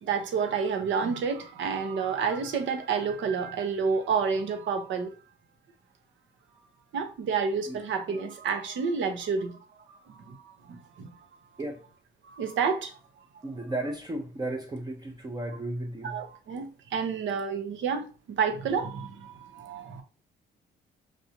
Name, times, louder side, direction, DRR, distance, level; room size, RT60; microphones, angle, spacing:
voice 1, 0.0-5.1 6.9-11.1 12.2-13.0 16.0-20.0, right 5 dB, 75° right, 0.8 m, -30 dB
voice 2, 13.4-16.2, right 1 dB, 20° right, 0.6 m, -34 dB
4.8 x 2.6 x 2.8 m
cardioid pair, 90°, 20 cm